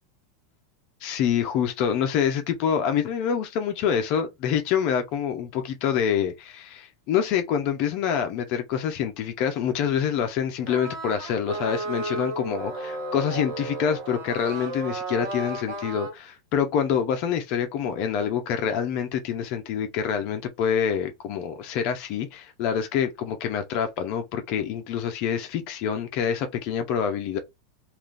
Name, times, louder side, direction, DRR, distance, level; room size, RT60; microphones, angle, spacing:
voice 1, 1.0-27.4, left 8 dB, 40° left, 0.6 m, -26 dB
sound 1, 10.7-16.1, right 2 dB, 65° right, 1.2 m, -33 dB
3.6 x 2.5 x 2.5 m
supercardioid pair, 160°, 2 cm